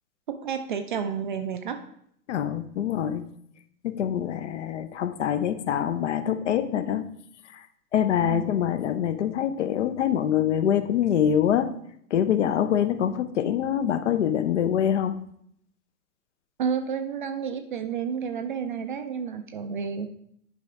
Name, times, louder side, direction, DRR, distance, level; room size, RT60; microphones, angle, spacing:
voice 1, 0.3-1.8 8.2-8.6 16.6-20.1, right 7 dB, 35° right, 7 dB, 0.4 m, -30 dB
voice 2, 2.3-3.3 3.8-7.1 7.9-11.8 12.1-15.2, left 9 dB, 50° left, 12 dB, 0.6 m, -25 dB
10.0 x 4.8 x 3.4 m, 0.69 s
figure-of-eight pair, 110°, 47 cm